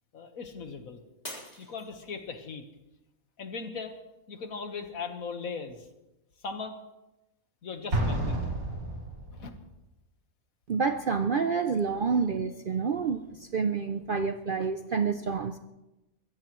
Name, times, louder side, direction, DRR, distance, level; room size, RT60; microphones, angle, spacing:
voice 1, 0.1-1.0 1.6-2.6 3.4-4.0 4.3-5.9 6.4-6.8 7.6-8.4 9.3-9.5, left 4 dB, 70° left, 6 dB, 1.8 m, -38 dB
Shatter, 1.2-2.5 3.1-3.5 4.1-4.2, equal, 25° left, 4.2 m, -44 dB
Explosion, 7.9-9.6, right 1 dB, 80° right, 3.3 m, -30 dB
voice 2, 10.7-15.6, right 5 dB, 55° right, 8 dB, 0.6 m, -28 dB
22.5 x 16.0 x 3.1 m, 0.97 s
omnidirectional pair, 1.5 m